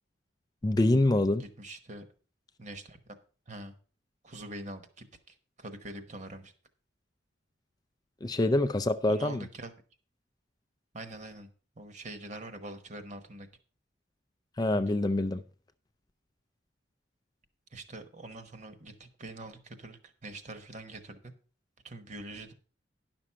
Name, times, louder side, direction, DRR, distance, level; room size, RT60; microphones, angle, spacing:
voice 1, 0.6-1.4 8.2-9.5 14.6-15.4, left 2 dB, 20° left, 0.4 m, -25 dB
voice 2, 1.4-2.1 2.6-3.2 3.5-3.8 4.2-6.5 9.1-9.7 10.9-11.5 11.8-13.5 17.7-21.3 21.8-22.5, right 2 dB, 40° right, 1.1 m, -44 dB
10.5 x 6.1 x 5.5 m
head